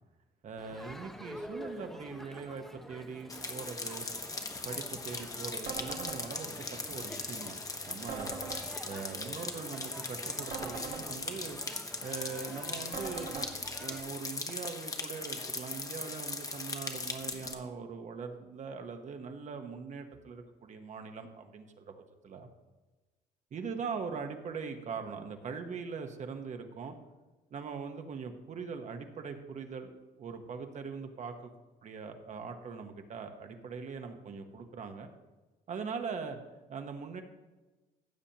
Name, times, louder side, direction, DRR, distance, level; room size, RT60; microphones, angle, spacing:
voice 1, 0.4-4.1 4.6-7.6 7.9-8.3 8.8-11.6 12.0-13.5 13.8-22.5 23.5-26.9 27.5-29.9 30.2-31.5 31.8-35.1 35.7-36.4 36.7-37.2, right 5 dB, 45° right, 6 dB, 1.1 m, -41 dB
Crowd, 0.6-14.0, equal, ahead, 0.7 m, -48 dB
sound 1, 3.3-17.5, left 3 dB, 20° left, 1.1 m, -39 dB
sound 2, 5.7-6.2 8.1-8.6 10.5-11.0 12.9-13.5, right 5 dB, 70° right, 1.6 m, -40 dB
15.5 x 6.9 x 2.9 m, 1.2 s
cardioid pair, 110°, 17 cm